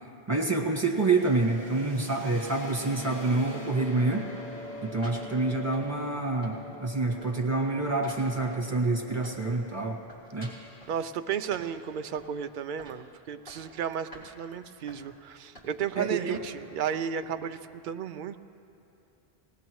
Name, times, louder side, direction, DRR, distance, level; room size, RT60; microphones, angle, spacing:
voice 1, 0.3-4.3 4.8-10.0 10.3-10.5 16.0-16.4, right 3 dB, 15° right, -1 dB, 1.7 m, -27 dB
sound 1, 0.8-12.4, left 1 dB, 90° left, 2.2 m, -45 dB
sound 2, 4.4-6.2 6.4-6.9 7.2-9.6 9.9-11.0 11.5-12.4 12.8-13.0 13.3-13.8 14.1-14.3 14.9-15.0 15.5-16.0 16.3-16.6 17.2-17.4, equal, 60° left, 3.3 m, -50 dB
voice 2, 10.9-17.6 17.8-18.4, right 8 dB, 60° right, 9 dB, 0.6 m, -33 dB
20.5 x 18.5 x 3.1 m, 2.7 s
omnidirectional pair, 1.0 m